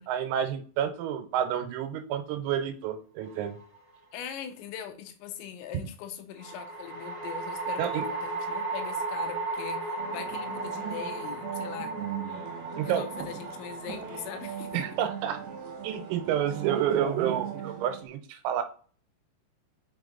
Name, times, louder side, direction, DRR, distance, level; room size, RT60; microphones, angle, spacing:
voice 1, 0.0-3.5 7.8-8.0 12.8-13.1 14.7-15.4 15.8-18.6, right 10 dB, 90° right, 3.8 m, -29 dB
sound 1, 3.2-3.9 6.4-17.7, right 3 dB, 50° right, 0.3 m, -36 dB
voice 2, 4.1-11.9 12.8-14.8, left 9 dB, 85° left, 3.5 m, -41 dB
sound 2, 10.0-18.1, right 8 dB, 65° right, 2.8 m, -38 dB
7.0 x 5.7 x 4.0 m
omnidirectional pair, 5.9 m